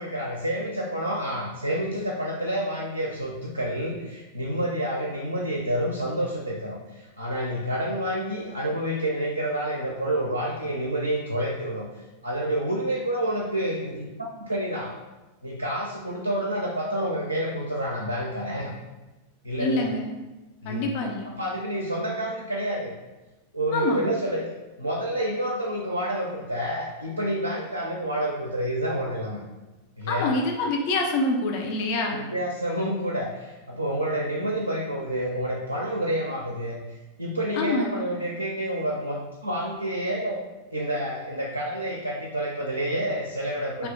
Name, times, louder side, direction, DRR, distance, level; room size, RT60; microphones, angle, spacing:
voice 1, 0.0-11.9 12.2-15.0 15.4-18.7 19.4-19.9 20.6-20.9 21.4-22.9 23.5-29.4 30.0-30.3 32.1-36.8 37.2-40.4 40.7-43.9, right 1 dB, 80° right, -2 dB, 0.4 m, -28 dB
voice 2, 19.6-20.1 20.7-21.3 23.7-24.0 30.1-32.2 37.5-38.1 43.8-43.9, left 2 dB, 45° left, 1 dB, 0.4 m, -26 dB
2.7 x 2.3 x 3.5 m, 1.1 s
figure-of-eight pair, 90°, 0 cm